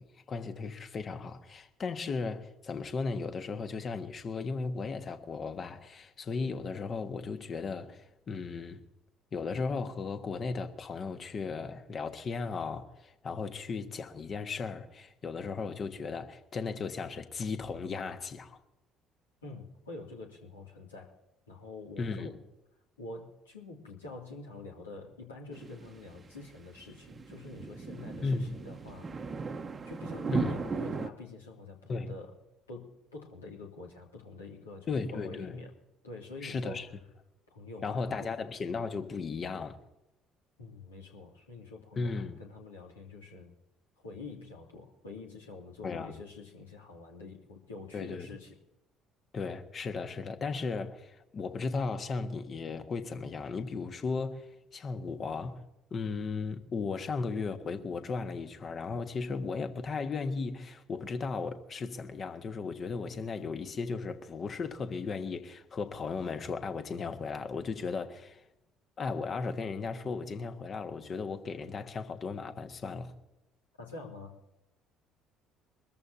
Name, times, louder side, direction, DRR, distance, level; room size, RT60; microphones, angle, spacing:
voice 1, 0.0-8.8 9.3-18.6 22.0-22.3 28.2-28.5 30.3-30.6 31.9-32.1 34.9-35.6 36.4-36.9 37.8-39.8 42.0-42.4 45.8-46.1 47.9-48.3 49.3-55.6 55.9-68.4 69.0-73.1, left 4 dB, 40° left, 1.5 m, -36 dB
voice 2, 19.4-21.1 21.5-22.4 23.0-29.1 29.8-32.4 32.7-35.7 36.0-36.9 37.5-38.5 40.6-43.5 44.0-48.6 73.8-74.3, left 3 dB, 80° left, 2.5 m, -46 dB
sound 1, 25.5-31.1, right 4 dB, 30° right, 1.0 m, -37 dB
23.5 x 14.0 x 2.8 m
figure-of-eight pair, 50°, 0 cm